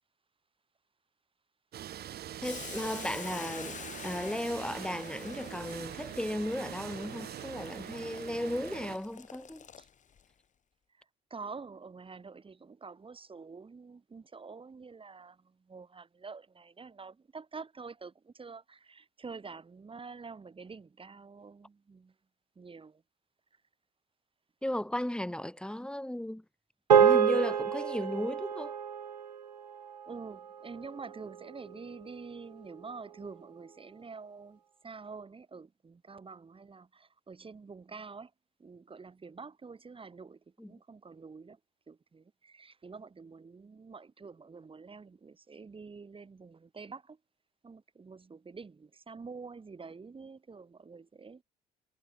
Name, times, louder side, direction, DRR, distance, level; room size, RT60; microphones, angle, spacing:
sound 1, 1.7-9.0, right 11 dB, 50° right, 4.6 m, -43 dB
Boiling, 2.4-10.2, left 7 dB, 35° left, 2.2 m, -47 dB
voice 1, 2.4-9.7 24.6-26.4 26.9-28.8 40.6-40.7, left 1 dB, 5° left, 2.2 m, -35 dB
voice 2, 11.3-22.1 22.6-23.0 30.1-38.3 38.6-40.4 40.7-41.6 41.9-47.2 47.6-51.4, right 4 dB, 25° right, 4.3 m, -47 dB
sound 2, 26.9-31.4, right 8 dB, 90° right, 0.5 m, -28 dB
figure-of-eight pair, 55°, 20 cm